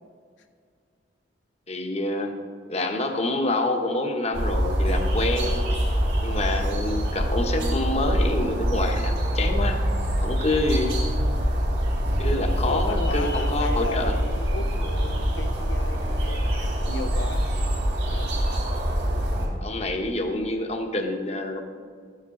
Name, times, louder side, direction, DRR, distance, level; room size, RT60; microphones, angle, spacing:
voice 1, 1.7-2.3 2.7-5.6 6.2-9.8 10.2-11.0 12.2-14.1 19.6-21.6, left 2 dB, 35° left, 4 dB, 1.0 m, -27 dB
sound 1, 4.3-19.5, equal, 75° right, 3.3 m, -25 dB
voice 2, 10.3-10.6 12.6-16.5 16.9-17.5 18.1-18.4, left 3 dB, 85° left, 7 dB, 0.7 m, -35 dB
13.0 x 9.9 x 3.8 m, 2.1 s
head